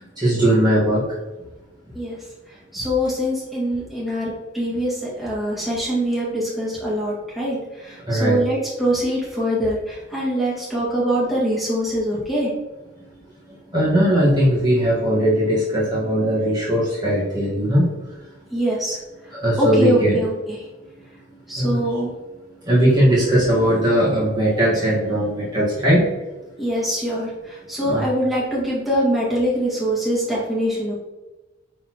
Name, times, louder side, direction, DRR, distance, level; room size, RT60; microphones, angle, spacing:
voice 1, 0.2-1.0 8.1-8.4 13.7-17.8 19.3-20.2 21.6-21.8 22.6-26.0 27.8-28.1, equal, 20° right, -8 dB, 1.7 m, -19 dB
voice 2, 2.7-12.5 18.5-19.0 19.6-20.6 21.5-22.1 26.6-30.9, equal, ahead, -8 dB, 2.0 m, -23 dB
10.0 x 4.1 x 3.1 m, 1.1 s
head